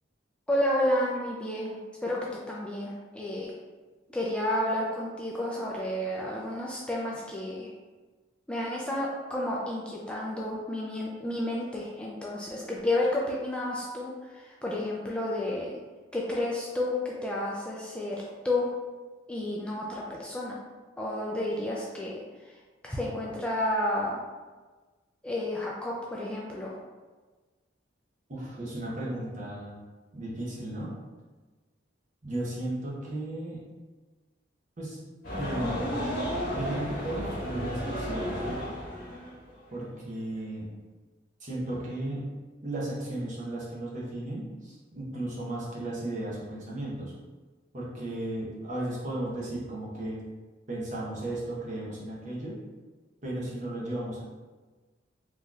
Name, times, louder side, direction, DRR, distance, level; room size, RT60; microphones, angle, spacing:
voice 1, 0.5-2.2 2.5-3.5 4.1-7.7 8.5-15.8 16.1-18.7 19.3-20.6 21.0-22.5 22.8-24.2 25.2-26.7, left 1 dB, 5° left, -4 dB, 0.3 m, -31 dB
voice 2, 28.3-29.8 30.1-30.9 32.2-33.6 34.8-35.0 35.3-36.1 36.5-38.6 39.7-40.7 41.4-42.2 42.6-47.1 47.7-50.2 50.7-52.6 53.2-54.2, right 1 dB, 40° right, -6 dB, 1.0 m, -35 dB
sound 1, 35.2-39.7, equal, 55° left, 1.4 m, -33 dB
3.9 x 3.0 x 2.4 m, 1.3 s
head